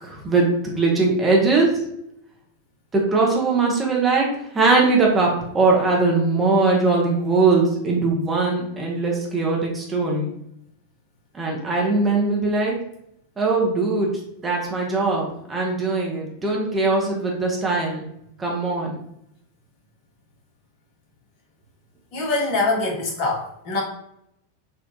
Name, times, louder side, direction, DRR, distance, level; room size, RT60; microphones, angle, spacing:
voice 1, 0.0-1.7 2.9-4.3 4.5-10.3 11.3-12.7 13.4-18.1 18.4-19.0, right 3 dB, 15° right, -2 dB, 0.7 m, -21 dB
voice 2, 22.1-23.8, left 3 dB, 45° left, -2 dB, 1.0 m, -24 dB
3.6 x 2.4 x 2.6 m, 0.77 s
figure-of-eight pair, 90°, 0 cm